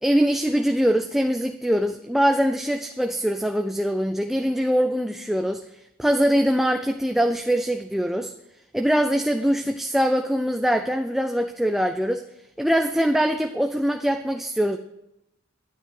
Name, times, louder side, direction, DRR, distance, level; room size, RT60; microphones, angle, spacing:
voice 1, 0.0-5.6 6.0-8.3 8.7-12.3 12.6-14.8, equal, ahead, 6 dB, 0.4 m, -23 dB
12.0 x 9.7 x 4.9 m, 0.85 s
head